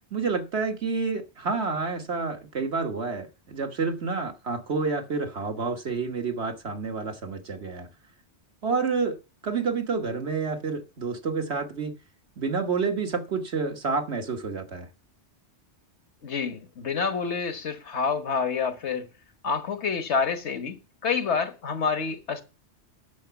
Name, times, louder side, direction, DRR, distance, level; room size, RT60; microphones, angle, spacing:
voice 1, 0.1-7.9 8.6-9.2 9.4-11.9 12.4-14.9, right 4 dB, 75° right, 1.7 m, -29 dB
voice 2, 16.2-19.1 19.4-22.4, left 5 dB, 85° left, 1.5 m, -28 dB
10.5 x 6.0 x 7.0 m
omnidirectional pair, 1.1 m